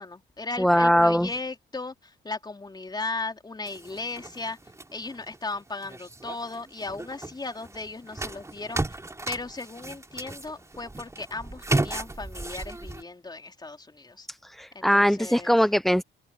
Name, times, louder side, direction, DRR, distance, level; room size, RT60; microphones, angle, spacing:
voice 1, 0.0-4.6 4.9-9.0 9.3-14.3 14.7-15.6, left 3 dB, 20° left, 3.8 m, -36 dB
voice 2, 0.6-1.3 14.4-16.0, equal, ahead, 0.6 m, -21 dB
sound 1, 3.7-13.0, right 2 dB, 15° right, 3.2 m, -35 dB
cardioid pair, 90°, 20 cm